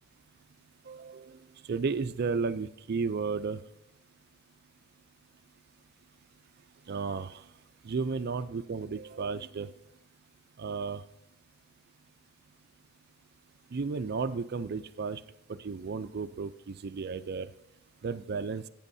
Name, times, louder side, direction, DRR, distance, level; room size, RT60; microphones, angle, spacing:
voice 1, 0.9-1.4 1.7-3.6 6.9-7.4 7.9-9.7 10.6-11.0 13.7-15.2 15.5-17.5 18.0-18.6, right 4 dB, 45° right, 12 dB, 0.4 m, -33 dB
18.0 x 9.0 x 2.7 m, 0.83 s
head